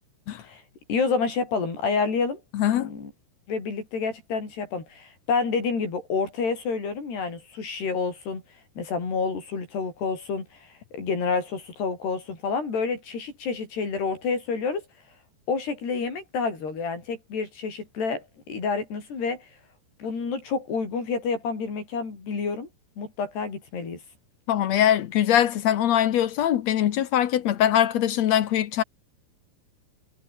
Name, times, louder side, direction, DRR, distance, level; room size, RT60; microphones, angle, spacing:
voice 1, 0.9-2.4 2.8-3.1 3.5-8.4 8.8-10.5 10.9-14.8 15.5-18.2 18.5-19.5 20.0-22.7 23.0-24.0, left 5 dB, 85° left, 9.0 m, -28 dB
voice 2, 2.5-2.9 24.5-28.8, left 11 dB, 65° left, 1.7 m, -22 dB
omnidirectional pair, 4.6 m